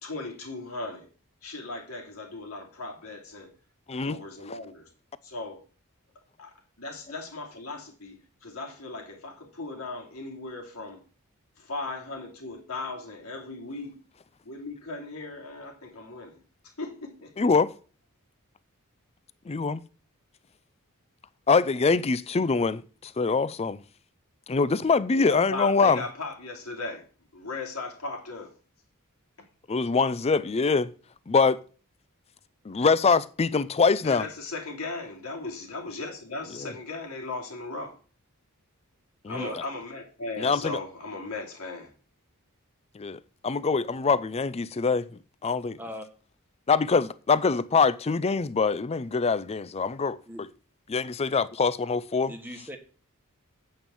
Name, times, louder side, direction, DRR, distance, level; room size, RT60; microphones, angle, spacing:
voice 1, 0.0-1.1 1.4-3.5 4.0-4.9 5.2-5.6 6.4-11.0 11.6-14.0 14.4-17.3 25.1-27.1 27.3-28.5 34.0-38.0 39.3-41.9, left 3 dB, 75° left, 3.1 m, -37 dB
voice 2, 17.4-17.7 19.5-19.8 21.5-23.8 24.5-26.0 29.7-30.9 31.3-31.6 32.6-34.3 39.2-39.5 40.4-40.8 42.9-45.1 45.4-45.8 46.7-50.2 50.9-52.3, left 4 dB, 30° left, 0.4 m, -24 dB
voice 3, 39.3-39.6 45.8-46.1 50.3-50.4 52.2-52.8, equal, 10° right, 1.4 m, -39 dB
8.9 x 5.4 x 7.1 m
head